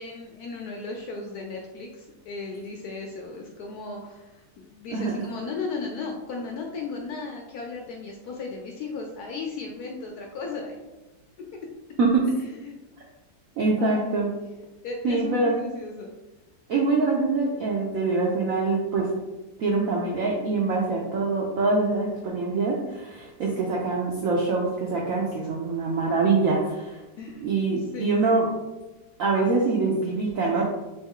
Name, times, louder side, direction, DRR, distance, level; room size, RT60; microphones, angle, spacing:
voice 1, 0.0-10.8 11.4-11.5 12.6-12.8 13.8-14.2 14.8-16.1 27.2-27.5 27.9-28.2, left 4 dB, 75° left, 1 dB, 0.9 m, -36 dB
voice 2, 13.6-14.3 15.0-15.5 16.7-19.1 19.6-27.0 27.4-28.5 29.2-30.6, right 3 dB, 75° right, -2 dB, 0.7 m, -24 dB
3.3 x 3.1 x 3.6 m, 1.1 s
omnidirectional pair, 2.1 m